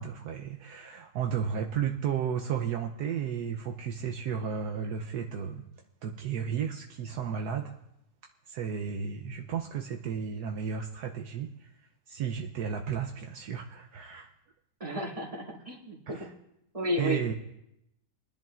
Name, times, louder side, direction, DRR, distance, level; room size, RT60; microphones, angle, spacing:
voice 1, 0.0-5.6 6.0-7.7 8.5-11.7 12.1-14.3 16.1-16.3 17.0-17.3, right 7 dB, 70° right, 3 dB, 1.2 m, -33 dB
voice 2, 14.8-16.3 16.7-17.3, equal, 20° right, -4 dB, 2.3 m, -33 dB
23.5 x 10.5 x 2.5 m, 0.84 s
omnidirectional pair, 1.9 m